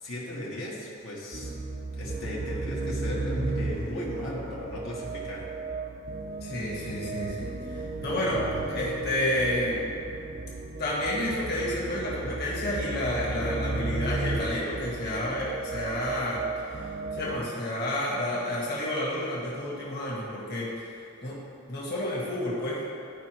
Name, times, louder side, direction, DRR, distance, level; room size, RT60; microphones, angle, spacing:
voice 1, 0.0-1.5 2.0-5.4, left 1 dB, 80° left, -6 dB, 1.5 m, -36 dB
sound 1, 1.3-17.4, right 3 dB, 45° right, 0.5 m, -34 dB
voice 2, 6.4-9.8 10.8-16.8 17.1-20.9 21.2-21.4 21.7-22.8, left 1 dB, 50° left, -6 dB, 1.5 m, -30 dB
11.5 x 4.8 x 3.0 m, 2.5 s
head